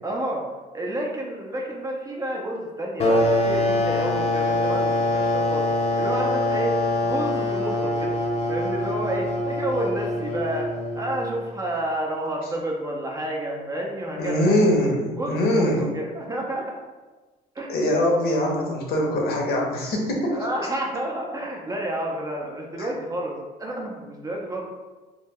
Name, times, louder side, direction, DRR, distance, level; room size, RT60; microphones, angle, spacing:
voice 1, 0.0-0.4 0.7-5.7 6.0-8.2 8.5-14.6 15.2-16.8 17.5-17.7 20.3-24.6, right 1 dB, 20° right, -1 dB, 0.4 m, -30 dB
sound 1, 3.0-11.4, left 1 dB, 35° left, 0.4 m, -24 dB
voice 2, 14.2-15.9 17.7-20.4, left 1 dB, 65° left, 0 dB, 0.7 m, -22 dB
2.2 x 2.1 x 3.4 m, 1.3 s
cardioid pair, 110°, 17 cm